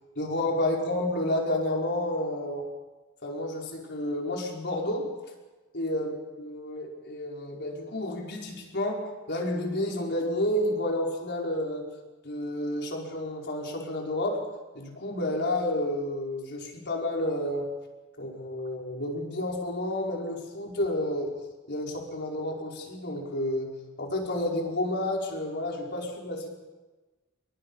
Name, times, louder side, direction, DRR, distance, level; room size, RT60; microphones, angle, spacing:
voice 1, 0.1-2.7 3.2-5.1 5.7-11.9 12.2-14.4 14.7-17.7 18.2-21.4 21.7-26.5, left 1 dB, 55° left, 0 dB, 5.0 m, -30 dB
28.5 x 23.5 x 5.6 m, 1.2 s
head